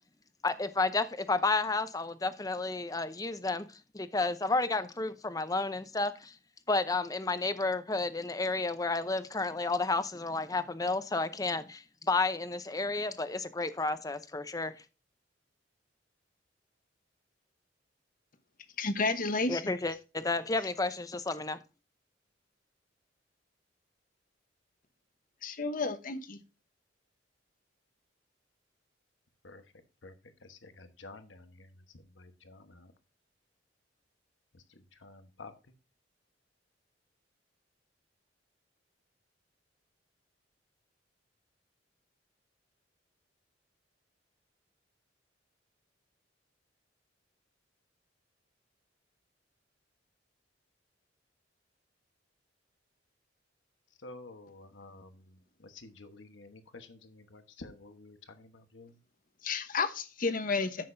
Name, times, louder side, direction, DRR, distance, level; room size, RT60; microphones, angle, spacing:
voice 1, 0.4-3.7 3.9-6.3 6.7-14.7 19.5-21.6, left 3 dB, 20° left, 0.6 m, -31 dB
voice 2, 18.8-19.8 25.4-26.4 59.4-60.8, left 4 dB, 45° left, 1.0 m, -31 dB
voice 3, 30.4-32.9 34.5-35.7 54.0-59.0, left 2 dB, 75° left, 1.2 m, -51 dB
10.5 x 7.6 x 2.6 m
head